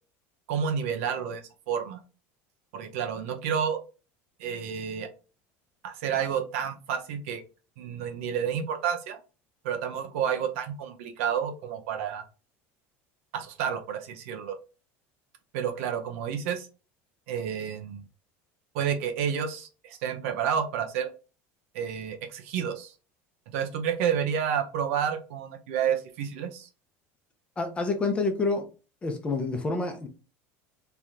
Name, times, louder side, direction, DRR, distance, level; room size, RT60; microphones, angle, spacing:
voice 1, 0.5-2.0 2.7-3.8 4.4-5.1 5.8-7.4 7.8-9.2 9.6-12.2 13.3-14.6 15.5-16.7 17.3-18.0 18.7-21.1 21.7-22.9 23.5-26.7, right 8 dB, 85° right, 0.9 m, -30 dB
voice 2, 27.6-28.7 29.0-30.1, left 3 dB, 15° left, 0.8 m, -28 dB
3.4 x 2.9 x 3.7 m
cardioid pair, 150°, 7 cm